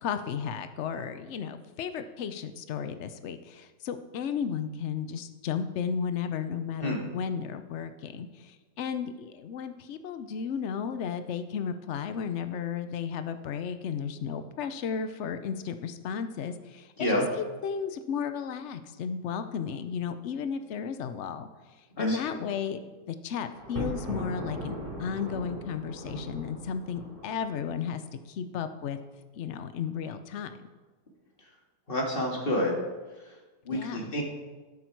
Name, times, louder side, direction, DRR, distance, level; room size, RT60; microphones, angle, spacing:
voice 1, 0.0-17.2 17.6-21.5 22.0-28.0 28.3-29.0 29.3-30.7 33.7-34.1, left 7 dB, 55° left, 10 dB, 0.8 m, -34 dB
Thunder, 23.5-27.7, equal, 30° right, 3.8 m, -38 dB
voice 2, 31.9-32.7 33.7-34.2, left 1 dB, 30° left, 0 dB, 2.1 m, -28 dB
12.5 x 8.1 x 4.6 m, 1.3 s
omnidirectional pair, 1.9 m